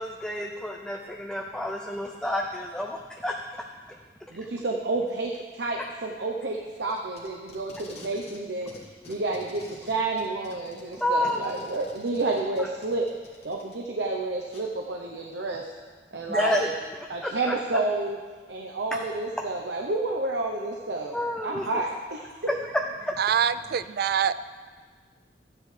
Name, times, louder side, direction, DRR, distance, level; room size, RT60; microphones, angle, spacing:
voice 1, 0.0-3.3 11.0-11.5 12.6-12.7 16.3-16.8 17.2-17.5 21.1-21.7 23.0-23.1, left 1 dB, 5° left, 0 dB, 0.5 m, -29 dB
voice 2, 4.3-8.7 9.1-13.1 13.4-15.7 16.1-16.7 17.1-18.2 18.5-21.2 21.4-22.2, right 2 dB, 75° right, 0 dB, 0.8 m, -30 dB
Packing tape duct tape, 6.7-8.4 8.7-13.7 14.5-14.6, left 2 dB, 35° left, 1.8 m, -49 dB
voice 3, 23.2-24.3, right 8 dB, 60° right, 15 dB, 0.3 m, -24 dB
13.5 x 9.6 x 3.3 m, 1.5 s
head